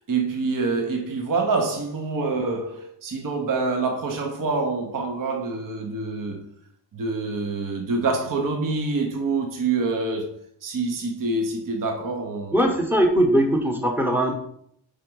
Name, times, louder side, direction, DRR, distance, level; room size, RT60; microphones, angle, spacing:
voice 1, 0.0-6.5 6.9-10.4 10.6-12.7, right 3 dB, 45° right, 0.8 m, -26 dB
voice 2, 12.5-14.3, right 1 dB, 5° right, 1.0 m, -20 dB
4.9 x 4.4 x 6.1 m
wide cardioid pair, 160°, 46 cm